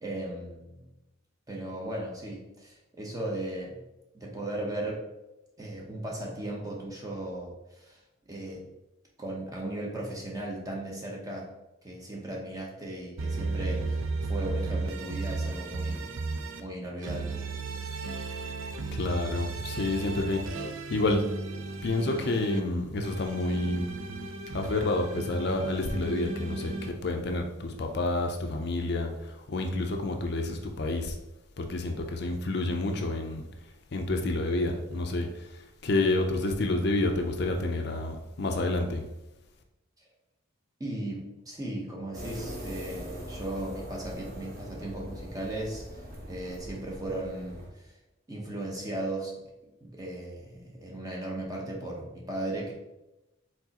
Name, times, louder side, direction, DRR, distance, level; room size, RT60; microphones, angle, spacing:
voice 1, 0.0-0.8 1.5-3.8 4.1-5.1 5.6-8.0 8.3-8.6 9.2-11.5 11.8-16.1 16.6-17.4 40.8-48.0 48.3-49.3 49.8-52.7, right 1 dB, 15° right, -2 dB, 0.8 m, -37 dB
sound 1, 13.2-16.6 17.0-22.6 23.0-26.9, right 3 dB, 75° right, 0.5 m, -34 dB
voice 2, 18.9-21.3 21.8-23.9 24.5-31.2 31.6-33.4 33.9-39.1, left 2 dB, 50° left, 4 dB, 0.5 m, -29 dB
sound 2, 42.1-47.7, equal, 45° right, 1.0 m, -42 dB
4.6 x 4.0 x 2.9 m, 0.96 s
head